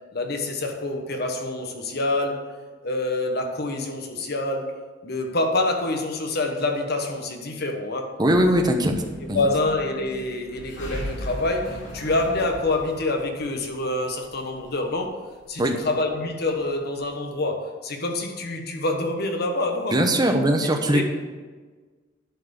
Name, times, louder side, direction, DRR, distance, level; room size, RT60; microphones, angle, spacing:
voice 1, 0.1-4.7 5.0-8.1 9.3-15.2 15.5-20.0 20.2-20.3 20.8-21.0, left 2 dB, 60° left, 4 dB, 1.3 m, -26 dB
voice 2, 8.2-8.9 9.3-9.4 15.6-15.8 19.9-21.0, right 1 dB, 20° right, 4 dB, 1.0 m, -20 dB
sound 1, 8.3-17.1, left 1 dB, 80° left, 2.9 m, -38 dB
10.5 x 4.7 x 6.6 m, 1.4 s
head